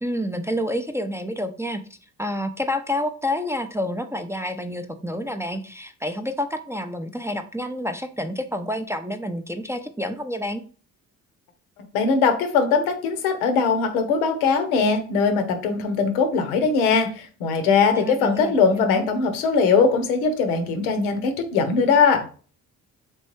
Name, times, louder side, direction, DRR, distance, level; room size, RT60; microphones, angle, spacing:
voice 1, 0.0-1.8 2.2-10.6 17.9-19.0, left 1 dB, 5° right, 6 dB, 0.4 m, -29 dB
voice 2, 11.9-22.2, left 5 dB, 90° left, 8 dB, 0.7 m, -21 dB
3.3 x 3.0 x 3.1 m, 0.40 s
hypercardioid pair, 50°, 41 cm